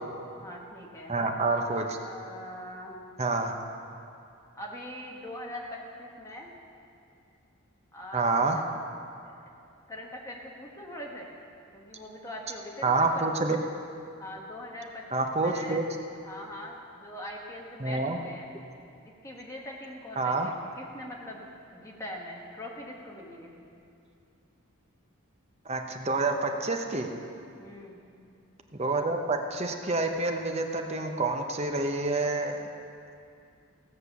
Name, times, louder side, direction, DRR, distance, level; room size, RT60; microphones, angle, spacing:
voice 1, 0.4-1.1 2.0-3.0 4.5-6.5 7.9-8.4 9.4-9.5 9.9-11.3 11.7-13.4 14.2-15.8 16.2-18.5 19.0-21.5 21.7-23.5 27.6-28.0, left 1 dB, 15° left, -2 dB, 1.5 m, -42 dB
voice 2, 1.1-2.0 3.2-3.5 8.1-8.6 12.8-13.6 15.1-15.8 17.8-18.2 20.2-20.5 25.7-27.1 28.7-32.6, right 3 dB, 30° right, 4 dB, 0.8 m, -28 dB
16.0 x 6.7 x 6.8 m, 2.5 s
head